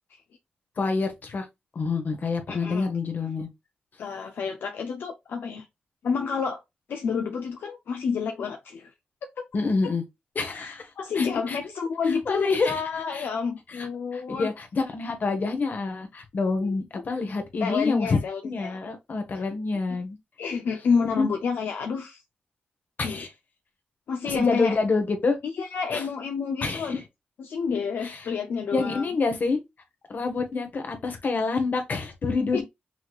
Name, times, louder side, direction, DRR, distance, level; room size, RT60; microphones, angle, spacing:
voice 1, 0.8-1.5 1.7-3.5 9.5-10.0 10.3-10.9 11.1-11.6 12.1-13.3 13.7-20.2 21.0-21.3 23.0-23.3 24.2-25.4 25.9-26.1 26.6-27.0 28.0-28.2 28.7-29.6 30.1-32.6, left 4 dB, 60° left, 1.4 m, -27 dB
voice 2, 2.5-2.9 4.0-5.7 6.0-6.6 6.9-8.9 10.5-14.5 16.6-16.7 17.6-18.8 19.9-20.0 20.4-22.2 23.0-23.3 24.1-24.8 25.6-27.0 27.4-29.1 32.5-32.6, left 5 dB, 85° left, 0.7 m, -29 dB
6.0 x 3.1 x 2.4 m
cardioid pair, 65°, 3 cm